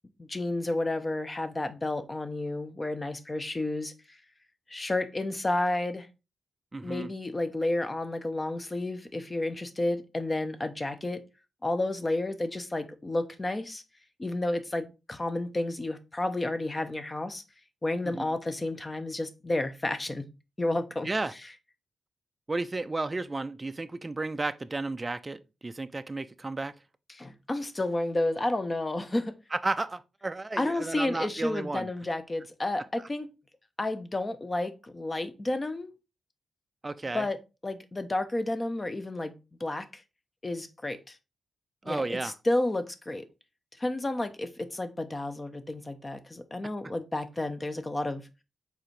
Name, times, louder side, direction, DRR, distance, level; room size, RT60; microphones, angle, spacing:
voice 1, 0.2-4.2 4.7-6.1 6.8-11.2 11.6-13.8 14.2-17.4 17.8-20.2 20.6-21.1 27.1-29.3 30.6-33.3 33.8-35.9 37.1-37.4 37.6-40.0 40.4-41.2 41.8-43.2 43.8-48.3, left 2 dB, 30° left, 0.6 m, -31 dB
voice 2, 6.7-7.1 18.1-18.3 21.0-21.3 22.5-26.7 29.5-31.9 36.8-37.2 41.8-42.3, right 3 dB, 30° right, 0.3 m, -33 dB
4.7 x 3.4 x 3.2 m
cardioid pair, 55°, 0 cm